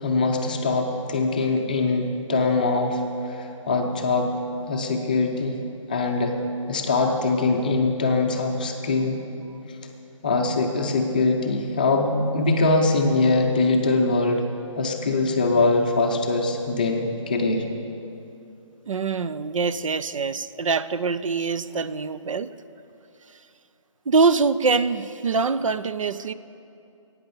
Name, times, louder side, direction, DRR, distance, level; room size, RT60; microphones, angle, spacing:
voice 1, 0.0-4.3 4.7-5.6 5.9-6.4 6.7-9.2 9.7-9.8 10.2-14.5 14.8-17.6, left 3 dB, 15° left, 2 dB, 0.6 m, -22 dB
voice 2, 18.9-22.5 24.1-26.3, right 4 dB, 75° right, 14 dB, 0.5 m, -24 dB
14.5 x 9.3 x 6.8 m, 2.7 s
hypercardioid pair, 175°, 17 cm